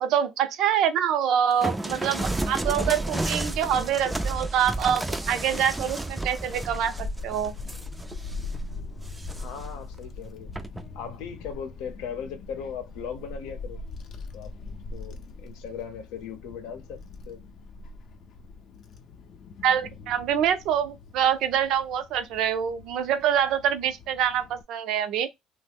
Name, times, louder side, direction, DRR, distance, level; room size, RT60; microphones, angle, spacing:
voice 1, 0.0-7.5 19.6-25.3, right 9 dB, 65° right, 0.5 m, -25 dB
sound 1, 1.6-8.6 9.0-9.7 10.5-10.9, right 2 dB, 10° right, 0.3 m, -32 dB
Child speech kid speaking / Wind, 6.3-24.6, left 3 dB, 50° left, 0.5 m, -41 dB
voice 2, 9.3-10.5 10.9-13.8 14.3-14.5 14.9-17.0 17.3-17.4, left 7 dB, 85° left, 0.7 m, -38 dB
2.9 x 2.0 x 3.3 m
cardioid pair, 115°, 0 cm